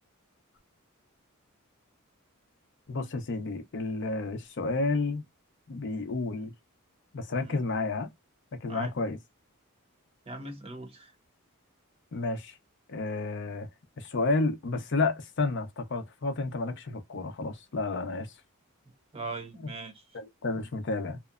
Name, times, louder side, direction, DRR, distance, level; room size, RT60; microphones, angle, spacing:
voice 1, 2.9-5.2 5.7-6.5 7.1-8.1 8.6-9.2 12.1-12.6 12.9-13.7 14.0-18.3 19.6-19.7 20.1-21.2, left 3 dB, 55° left, 0.5 m, -31 dB
voice 2, 10.3-11.1 19.1-20.2, right 3 dB, 25° right, 0.7 m, -40 dB
2.8 x 2.0 x 2.3 m
head